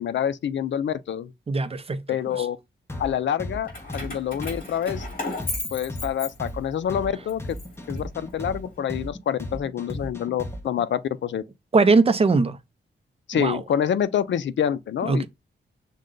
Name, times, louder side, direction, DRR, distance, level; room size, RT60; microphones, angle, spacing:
voice 1, 0.0-1.3 2.1-2.6 3.0-5.1 5.7-7.4 7.9-11.4 13.3-15.3, left 9 dB, 70° left, 0.5 m, -27 dB
voice 2, 1.5-2.0 2.4-2.5 11.7-12.6 13.4-13.6 15.1-15.3, right 3 dB, 30° right, 0.6 m, -20 dB
sound 1, 2.9-10.8, left 1 dB, 10° left, 0.8 m, -35 dB
Keys jangling, 3.7-6.8 7.3-8.6, left 2 dB, 45° left, 3.0 m, -35 dB
6.4 x 2.2 x 3.8 m
wide cardioid pair, 110°, 20 cm